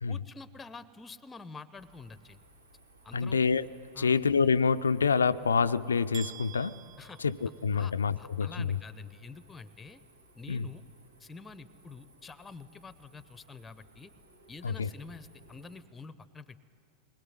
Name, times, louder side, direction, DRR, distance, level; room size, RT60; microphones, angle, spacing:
voice 1, 0.1-2.4 3.0-3.4 3.9-4.2 7.0-7.2 7.7-10.0 10.3-10.8 11.2-14.1 14.5-16.6, left 4 dB, 15° left, 16 dB, 0.8 m, -47 dB
sound 1, 1.7-15.8, right 1 dB, 75° right, 3.1 m, -61 dB
voice 2, 3.1-3.7 4.0-6.8 7.2-8.8 10.5-10.7 14.6-14.9, left 5 dB, 75° left, 13 dB, 0.5 m, -27 dB
sound 2, 6.1-8.1, right 15 dB, 35° right, 0.7 m, -48 dB
21.0 x 21.0 x 9.7 m, 2.7 s
figure-of-eight pair, 90°, 0 cm